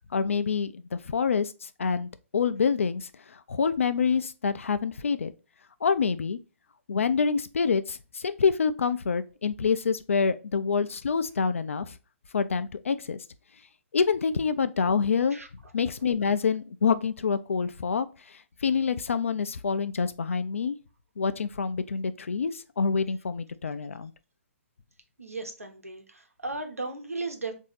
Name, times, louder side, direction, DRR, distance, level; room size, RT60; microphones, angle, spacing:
voice 1, 0.1-5.3 5.8-6.4 6.9-12.0 12.3-13.2 13.9-15.4 15.7-20.8 21.2-24.1, left 5 dB, 65° left, 0.4 m, -27 dB
voice 2, 25.2-27.5, right 3 dB, 85° right, 1.0 m, -36 dB
4.0 x 2.7 x 3.9 m
figure-of-eight pair, 125°, 8 cm